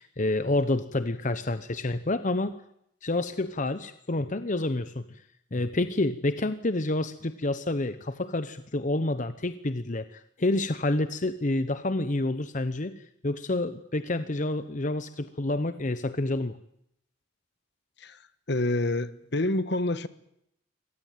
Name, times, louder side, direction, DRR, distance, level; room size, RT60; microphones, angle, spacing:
voice 1, 0.0-2.5 3.0-5.2 5.5-16.6, left 2 dB, 40° left, 11 dB, 0.9 m, -28 dB
voice 2, 18.5-20.1, left 2 dB, 60° left, 14 dB, 1.3 m, -27 dB
25.0 x 18.5 x 9.2 m, 0.74 s
head